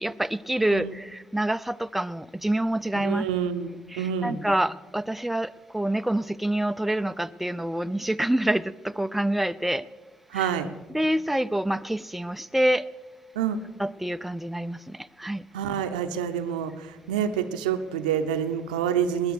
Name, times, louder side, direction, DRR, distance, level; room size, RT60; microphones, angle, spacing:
voice 1, 0.0-3.3 3.9-9.9 10.3-10.5 10.9-12.9 13.8-15.4, right 1 dB, 5° right, 12 dB, 0.4 m, -27 dB
voice 2, 2.9-4.4 10.3-10.7 13.4-13.6 15.5-19.3, right 8 dB, 80° right, 9 dB, 0.7 m, -27 dB
19.0 x 10.5 x 6.5 m, 1.3 s
figure-of-eight pair, 45°, 4 cm